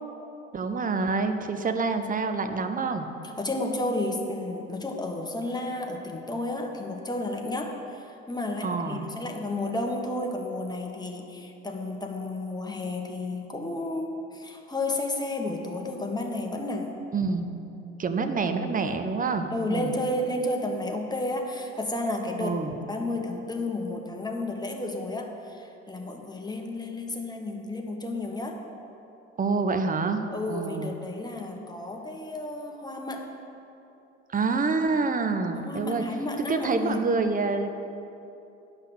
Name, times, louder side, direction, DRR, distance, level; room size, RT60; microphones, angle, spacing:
voice 1, 0.5-3.1 8.6-9.1 17.1-17.5 18.0-19.9 22.4-22.7 29.4-30.9 34.3-36.0 36.4-37.7, right 4 dB, 20° right, 7 dB, 0.8 m, -27 dB
voice 2, 3.2-17.0 19.5-28.6 30.3-33.4 35.5-37.0, left 2 dB, 10° left, 1 dB, 1.4 m, -32 dB
11.0 x 5.6 x 6.3 m, 2.8 s
hypercardioid pair, 60°, 38 cm